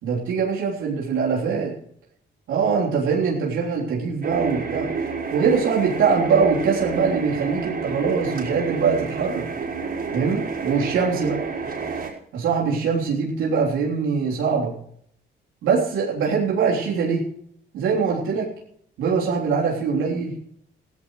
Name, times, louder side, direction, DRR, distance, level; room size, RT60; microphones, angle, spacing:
voice 1, 0.0-1.7 2.5-4.9 5.3-9.5 10.1-11.4 12.3-14.7 15.6-17.3 17.7-18.5 19.0-20.4, right 5 dB, 90° right, -3 dB, 3.5 m, -22 dB
sound 1, 4.2-12.1, right 4 dB, 50° right, 4.5 m, -29 dB
16.0 x 16.0 x 3.2 m, 0.67 s
cardioid pair, 90°, 20 cm